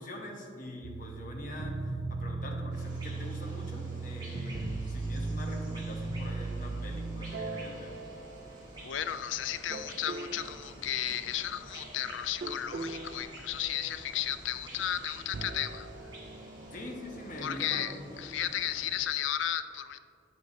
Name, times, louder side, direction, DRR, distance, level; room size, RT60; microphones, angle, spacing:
voice 1, 0.0-8.0 16.7-18.2, left 1 dB, 45° left, 1 dB, 1.0 m, -43 dB
sound 1, 0.8-9.1 9.7-10.6 12.4-14.1 15.2-17.8, right 3 dB, 50° right, 0.4 m, -38 dB
sound 2, 2.7-19.0, right 1 dB, 25° right, 1.8 m, -49 dB
voice 2, 8.8-15.9 17.4-17.9 18.2-20.0, left 11 dB, 85° left, 11 dB, 0.4 m, -34 dB
9.1 x 8.0 x 2.8 m, 2.3 s
head